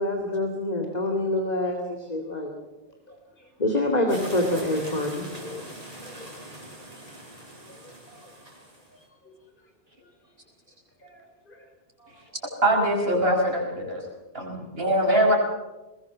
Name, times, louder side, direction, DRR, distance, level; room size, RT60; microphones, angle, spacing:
voice 1, 0.0-2.5 3.6-5.3, left 1 dB, 40° left, 2 dB, 2.6 m, -26 dB
sound 1, 4.1-9.0, right 1 dB, 40° right, 4.5 m, -42 dB
voice 2, 5.3-5.6 6.0-6.4 7.7-8.3 9.2-9.3 11.0-11.7 12.0-12.1, left 3 dB, 55° left, 3 dB, 4.7 m, -47 dB
voice 3, 12.6-14.0 14.3-15.3, right 1 dB, 70° right, 0 dB, 5.8 m, -22 dB
21.0 x 21.0 x 7.4 m, 1.1 s
omnidirectional pair, 1.0 m